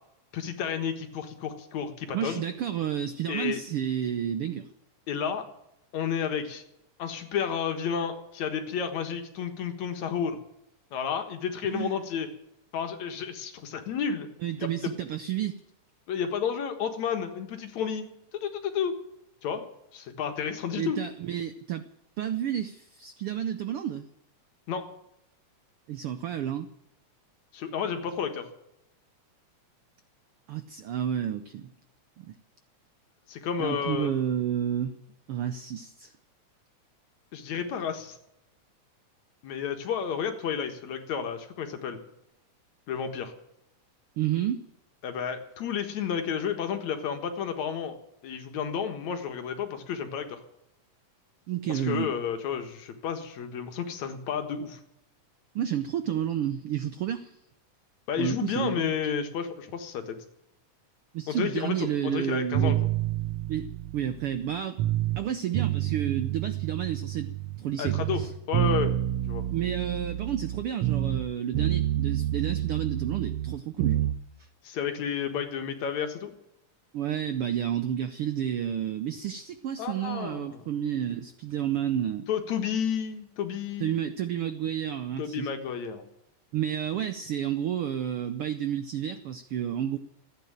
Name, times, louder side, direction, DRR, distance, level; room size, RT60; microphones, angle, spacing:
voice 1, 0.3-2.4 3.3-3.6 5.1-5.5 5.9-6.6 7.0-10.4 10.9-12.3 12.7-14.3 14.6-14.7 16.1-19.0 19.4-19.6 19.9-21.0 24.7-24.9 27.5-28.5 33.3-34.1 37.3-38.2 39.4-42.0 42.9-43.3 45.0-47.9 48.2-50.4 51.7-54.8 58.1-60.2 61.3-62.8 67.8-68.2 68.5-68.9 69.2-69.4 74.6-76.3 79.8-80.6 82.3-83.9 85.2-86.0, left 7 dB, 65° left, 7 dB, 2.7 m, -31 dB
voice 2, 2.1-4.7 11.6-12.0 14.4-15.6 20.7-21.8 22.2-24.1 25.9-26.7 30.5-31.7 32.2-32.4 33.6-35.0 35.3-36.1 44.2-44.6 51.5-52.1 55.5-57.4 58.2-58.9 61.1-62.8 63.5-64.8 65.2-67.3 67.6-68.3 69.5-74.0 76.9-82.3 83.8-85.5 86.5-90.0, right 10 dB, 85° right, 11 dB, 1.2 m, -31 dB
sound 1, 62.5-65.2 65.5-67.6 67.9-71.3 71.5-74.2, right 13 dB, 70° right, 1.7 m, -28 dB
15.0 x 9.5 x 9.0 m, 0.81 s
omnidirectional pair, 3.5 m